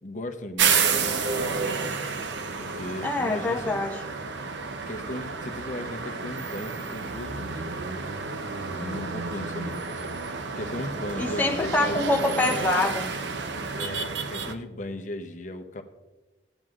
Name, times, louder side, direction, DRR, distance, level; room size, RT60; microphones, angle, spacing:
voice 1, 0.0-1.4 2.6-3.9 4.9-7.9 8.7-10.2 10.5-12.0 13.8-15.8, left 1 dB, 45° left, 5 dB, 0.8 m, -36 dB
sound 1, 0.6-14.5, right 5 dB, 85° right, 0.7 m, -30 dB
voice 2, 3.0-4.0 11.2-13.1, left 2 dB, 10° left, 1 dB, 0.6 m, -25 dB
17.0 x 8.9 x 2.4 m, 1.1 s
head